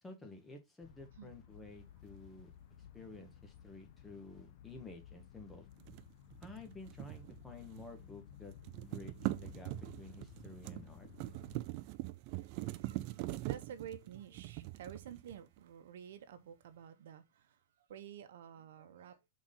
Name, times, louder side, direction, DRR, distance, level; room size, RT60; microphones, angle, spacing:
voice 1, 0.0-2.5 2.8-5.7 6.4-8.5 8.8-11.1, left 2 dB, 10° left, 1.7 m, -52 dB
sound 1, 0.8-11.6, left 10 dB, 60° left, 0.6 m, -56 dB
sound 2, 5.8-8.0 8.3-15.6, right 18 dB, 45° right, 0.5 m, -43 dB
voice 2, 11.3-19.2, right 9 dB, 75° right, 1.0 m, -52 dB
6.0 x 4.2 x 3.8 m
supercardioid pair, 145°, 0 cm